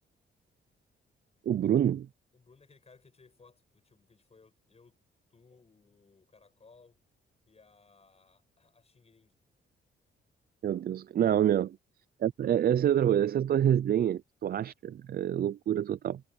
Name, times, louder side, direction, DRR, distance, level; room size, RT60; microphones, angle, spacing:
voice 1, 1.5-2.1 10.6-11.8 12.2-16.2, right 10 dB, 50° right, 0.4 m, -27 dB
voice 2, 2.3-5.0 5.3-7.0 7.5-9.3, left 4 dB, 30° left, 7.7 m, -61 dB
cardioid pair, 105°, 20 cm